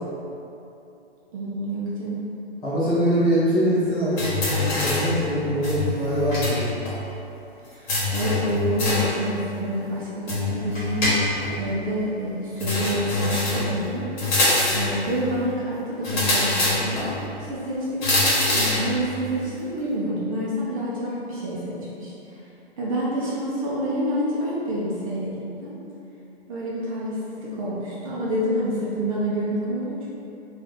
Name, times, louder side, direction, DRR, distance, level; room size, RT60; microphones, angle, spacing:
voice 1, 1.3-2.3 7.7-14.2 14.7-22.1 22.8-25.7 26.5-30.1, right 1 dB, 30° right, -7 dB, 0.6 m, -28 dB
voice 2, 2.6-6.7, equal, 10° left, -12 dB, 0.7 m, -23 dB
sound 1, 4.2-5.2 5.6-6.6 6.8-6.9 7.9-9.2 10.3-11.5 12.6-13.7 14.2-15.0 16.0-17.1 18.0-18.9, left 2 dB, 45° left, 1.3 m, -24 dB
2.7 x 2.5 x 4.1 m, 2.8 s
figure-of-eight pair, 125°, 32 cm